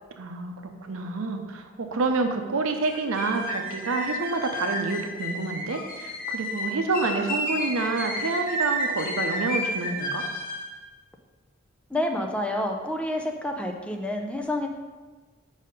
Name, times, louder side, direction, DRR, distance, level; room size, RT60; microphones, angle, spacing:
voice 1, 0.2-0.5 0.8-10.2, right 3 dB, 85° right, 5 dB, 0.7 m, -28 dB
sound 1, 2.9-10.7, equal, 45° left, 1.0 m, -31 dB
voice 2, 11.9-14.7, left 1 dB, 5° left, 2 dB, 0.5 m, -28 dB
5.2 x 4.2 x 5.2 m, 1.3 s
head